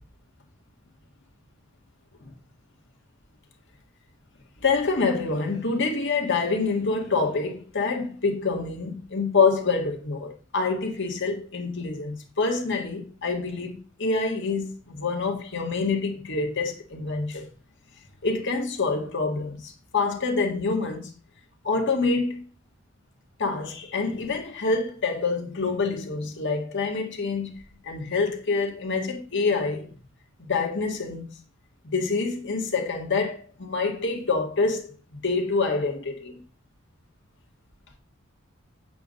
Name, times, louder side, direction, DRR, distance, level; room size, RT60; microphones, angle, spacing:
voice 1, 4.6-17.4 18.2-21.1 21.6-22.4 23.4-27.5 27.8-29.9 30.4-31.3 31.8-36.4, left 4 dB, 60° left, 1.8 m, -26 dB
8.1 x 4.1 x 6.4 m
head